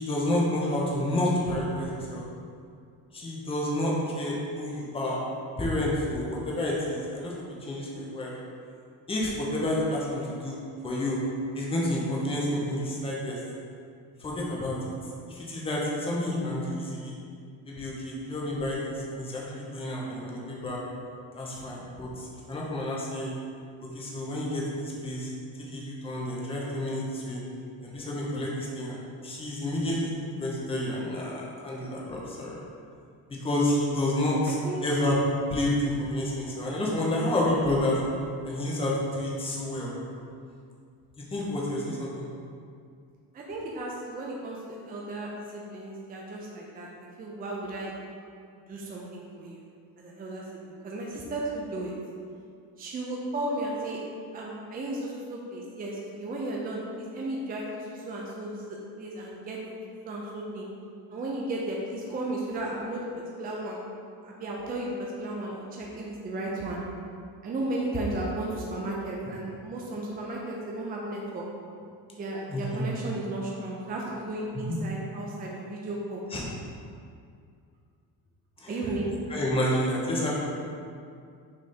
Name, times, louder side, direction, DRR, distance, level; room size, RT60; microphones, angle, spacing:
voice 1, 0.0-2.2 3.1-5.2 5.6-8.3 9.1-10.6 10.8-11.2 11.5-13.4 14.2-14.8 15.3-17.2 17.7-20.8 21.3-23.3 23.9-25.3 25.7-27.4 27.8-29.0 29.2-30.1 30.4-32.6 33.3-34.6 34.8-35.2 35.5-38.0 38.4-39.9 41.2-42.3 72.5-72.8 74.5-74.8 76.3-76.5 78.6-78.7 79.3-80.3, left 1 dB, 15° left, -5 dB, 0.9 m, -29 dB
voice 2, 34.5-34.8 43.3-47.9 48.7-49.6 50.0-51.9 52.8-54.0 54.3-59.6 60.1-60.7 61.1-63.8 64.2-66.8 67.4-71.4 72.2-76.2 78.7-79.1, right 1 dB, 25° right, -3 dB, 0.6 m, -34 dB
6.3 x 3.5 x 4.3 m, 2.3 s
cardioid pair, 155°, 38 cm